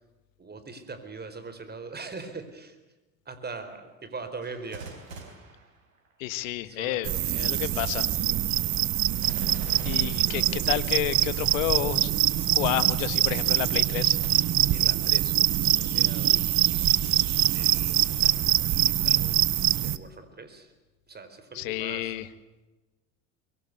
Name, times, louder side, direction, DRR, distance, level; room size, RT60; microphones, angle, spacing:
voice 1, 0.4-2.8 3.2-4.9 6.6-7.1 9.9-10.7 14.4-16.4 17.5-20.7 21.1-22.1, right 4 dB, 25° right, 10 dB, 4.5 m, -42 dB
Gunshot gunfire, 4.4-6.4 9.2-11.2 14.2-14.8 15.4-15.5 18.2-18.9 19.5-19.6, right 4 dB, 90° right, 4.4 m, -44 dB
voice 2, 6.2-8.1 9.8-12.2 12.5-14.2 21.6-22.3, left 15 dB, 75° left, 14 dB, 1.7 m, -30 dB
sound 1, 7.0-20.0, right 13 dB, 45° right, 1.2 m, -24 dB
24.0 x 23.0 x 8.2 m, 1.1 s
hypercardioid pair, 75°, 40 cm